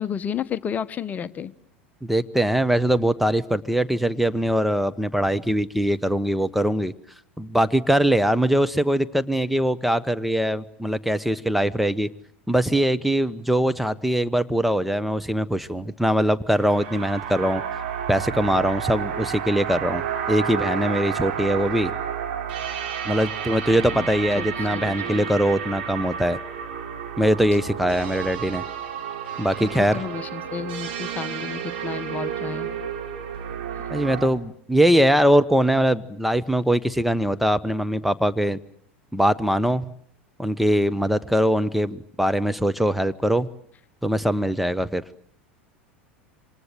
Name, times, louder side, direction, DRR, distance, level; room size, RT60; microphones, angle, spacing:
voice 1, 0.0-1.5 23.7-24.1 24.4-24.5 24.7-25.3 29.6-32.7, left 7 dB, 25° left, 15 dB, 1.2 m, -32 dB
voice 2, 2.0-6.9 7.4-12.1 12.5-17.6 18.1-21.9 23.0-26.4 27.2-28.6 29.4-30.0 33.9-38.6 39.1-39.9 40.4-43.5 44.0-45.0, equal, ahead, 11 dB, 1.1 m, -22 dB
sound 1, 16.5-34.3, right 8 dB, 60° right, 5.2 m, -31 dB
27.5 x 26.0 x 7.8 m, 0.64 s
figure-of-eight pair, 80°, 6 cm